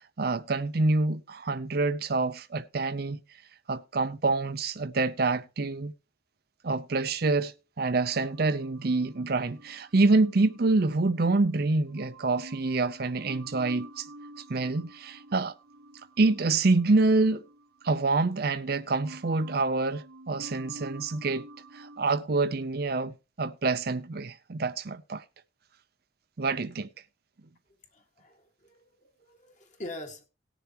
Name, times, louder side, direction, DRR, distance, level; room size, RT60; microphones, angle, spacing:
voice 1, 0.2-3.2 3.7-5.9 6.6-14.1 14.5-15.5 16.2-17.4 17.8-21.4 21.7-25.2 26.4-26.9, right 3 dB, 55° right, 0.6 m, -26 dB
sound 1, 8.1-11.4 11.9-18.7 19.0-22.2, right 1 dB, 90° right, 1.0 m, -49 dB
voice 2, 27.9-30.3, left 1 dB, 40° left, 2.0 m, -44 dB
18.5 x 6.9 x 3.0 m
head